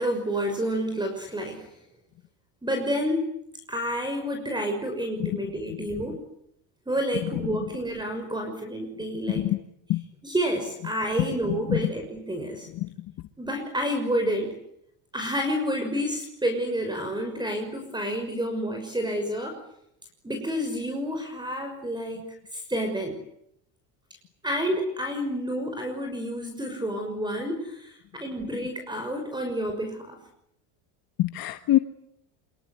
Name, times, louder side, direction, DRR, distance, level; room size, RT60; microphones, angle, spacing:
voice 1, 0.0-1.7 2.6-3.2 3.7-6.2 6.9-9.5 10.2-12.7 13.4-14.5 15.1-19.6 20.2-22.2 22.5-23.2 24.4-30.2, equal, 10° right, 5 dB, 6.1 m, -29 dB
voice 2, 9.3-9.6 9.9-10.0 11.2-11.8 12.7-12.9 31.2-31.8, left 15 dB, 55° left, 9 dB, 1.5 m, -26 dB
27.0 x 22.5 x 9.5 m, 0.74 s
cardioid pair, 115°, 43 cm